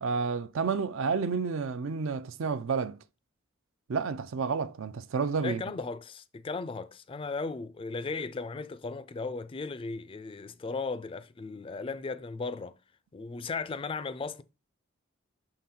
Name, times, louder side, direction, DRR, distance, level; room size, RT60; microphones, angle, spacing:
voice 1, 0.0-3.0 3.9-5.6, right 5 dB, 70° right, 0.4 m, -30 dB
voice 2, 5.4-12.7 13.1-14.4, left 4 dB, 25° left, 0.3 m, -36 dB
6.2 x 3.9 x 4.2 m
head